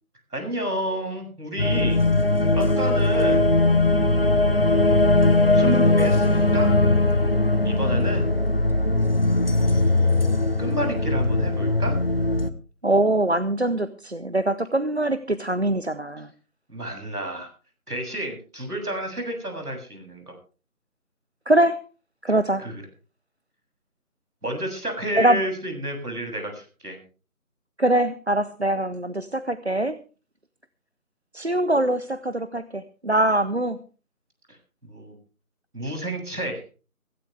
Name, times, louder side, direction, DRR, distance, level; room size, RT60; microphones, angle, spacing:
voice 1, 0.3-2.0 2.5-3.5 4.1-5.1 5.5-6.8 7.6-8.3 9.6-11.9 16.7-17.5 17.9-20.3 22.6-22.8 24.4-27.0 34.8-35.1 35.7-36.6, right 1 dB, 90° right, 4 dB, 7.3 m, -31 dB
sound 1, 1.6-12.5, left 2 dB, 40° left, 1.1 m, -20 dB
voice 2, 12.8-16.3 21.5-21.8 22.2-22.7 25.2-25.4 27.8-30.0 31.3-33.8, right 1 dB, 45° right, 14 dB, 0.7 m, -23 dB
16.5 x 16.0 x 3.4 m, 0.35 s
figure-of-eight pair, 170°, 44 cm